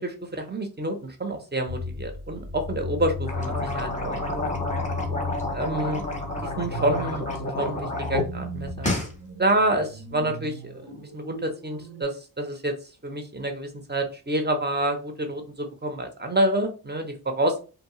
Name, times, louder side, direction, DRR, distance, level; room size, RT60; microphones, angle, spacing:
voice 1, 0.0-4.4 5.5-6.0 6.4-8.9 9.4-12.7 13.0-17.6, right 1 dB, 25° right, 4 dB, 0.7 m, -28 dB
sound 1, 1.7-12.0, left 2 dB, 65° right, 1.0 m, -36 dB
sound 2, 3.2-8.3 8.6-9.1, left 2 dB, 20° left, 0.8 m, -30 dB
2.7 x 2.1 x 3.0 m, 0.34 s
wide cardioid pair, 60°, 39 cm